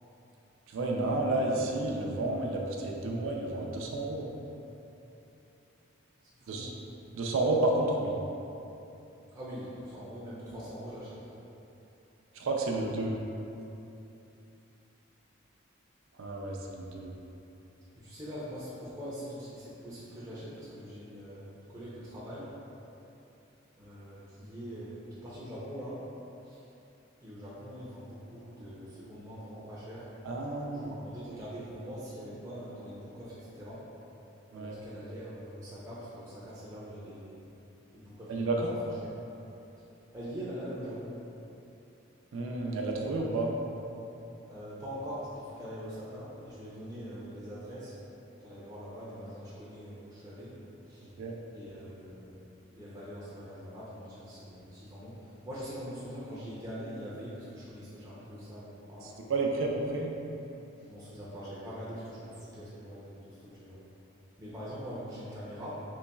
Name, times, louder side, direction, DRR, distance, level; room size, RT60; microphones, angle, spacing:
voice 1, 0.7-4.3 6.5-6.7 7.1-8.2 12.3-13.2 16.2-17.1 30.2-31.0 34.5-34.8 38.3-38.8 42.3-43.5 51.2-51.3 59.0-60.1, right 2 dB, 75° right, 0 dB, 0.4 m, -31 dB
voice 2, 6.2-6.7 9.3-11.3 17.9-22.5 23.8-26.0 26.4-26.6 27.2-30.0 30.7-33.8 34.5-37.4 37.9-38.5 38.8-38.9 40.1-41.2 44.5-48.0 48.4-50.6 50.9-51.1 51.5-52.4 52.7-59.2 60.9-63.8 64.4-65.8, equal, 15° right, -10 dB, 0.5 m, -43 dB
4.0 x 3.1 x 2.2 m, 2.9 s
head